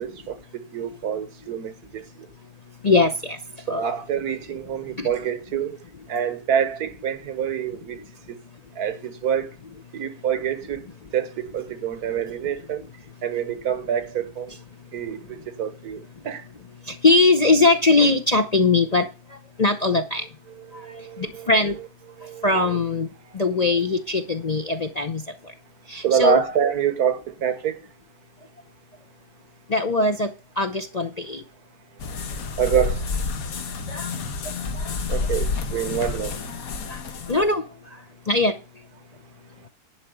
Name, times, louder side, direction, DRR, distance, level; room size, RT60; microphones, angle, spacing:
voice 1, 0.0-2.0 3.7-5.8 6.1-8.0 8.3-8.4 8.8-9.5 9.9-10.8 11.1-12.8 13.2-14.5 14.9-16.4 20.7-21.5 22.2-22.4 26.0-27.8 32.6-33.0 35.1-36.4, right 8 dB, 75° right, 1.5 m, -26 dB
voice 2, 2.8-3.4 3.7-3.8 5.0-5.1 14.5-14.6 16.9-20.3 20.7-20.8 21.2-21.8 22.4-23.1 23.3-25.5 25.9-26.4 29.7-30.3 30.6-31.4 33.9-34.1 34.7-34.9 36.9-37.0 37.3-37.6 38.3-38.6, left 3 dB, 40° left, 0.6 m, -21 dB
sound 1, 32.0-37.5, left 4 dB, 65° left, 1.5 m, -29 dB
11.0 x 4.8 x 7.9 m
omnidirectional pair, 1.6 m